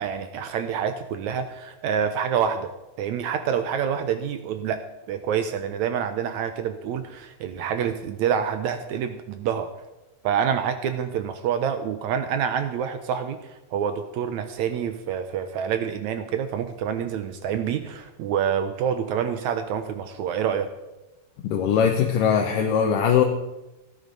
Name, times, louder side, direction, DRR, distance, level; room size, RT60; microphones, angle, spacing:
voice 1, 0.0-2.7 3.0-4.8 5.1-9.7 10.2-20.7, right 8 dB, 75° right, 9 dB, 1.8 m, -27 dB
voice 2, 21.4-23.2, left 7 dB, 80° left, 2 dB, 2.5 m, -21 dB
17.0 x 10.5 x 4.0 m, 1.0 s
omnidirectional pair, 3.9 m